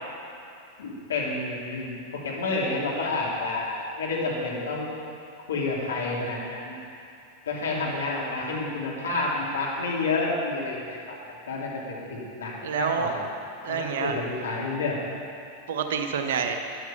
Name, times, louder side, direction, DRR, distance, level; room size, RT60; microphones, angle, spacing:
voice 1, 0.8-4.9 5.5-6.8 7.4-11.0 11.5-13.2 13.7-15.0, left 3 dB, 65° left, -4 dB, 2.7 m, -29 dB
voice 2, 12.6-13.1 13.6-14.2 15.7-16.6, right 7 dB, 60° right, 5 dB, 1.0 m, -27 dB
12.0 x 10.0 x 5.7 m, 2.6 s
figure-of-eight pair, 90°, 0 cm